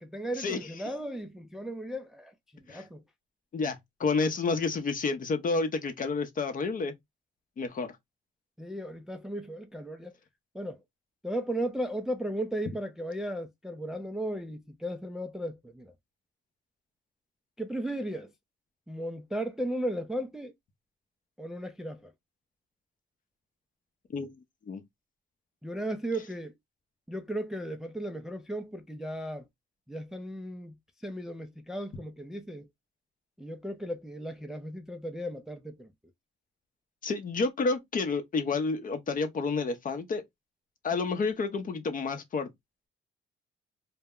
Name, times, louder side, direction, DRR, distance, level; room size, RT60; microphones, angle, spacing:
voice 1, 0.0-3.0 8.6-10.1 10.5-10.8 11.2-15.9 17.6-18.3 18.9-20.5 21.4-22.1 25.6-26.5 27.1-29.5 29.9-30.7 31.0-32.7 33.4-35.9, right 1 dB, ahead, 0.3 m, -36 dB
voice 2, 3.5-6.9 7.6-7.9 24.1-24.3 24.7-24.8 37.0-40.2 40.8-42.5, left 4 dB, 45° left, 0.7 m, -30 dB
2.1 x 2.1 x 3.5 m
cardioid pair, 90°, 20 cm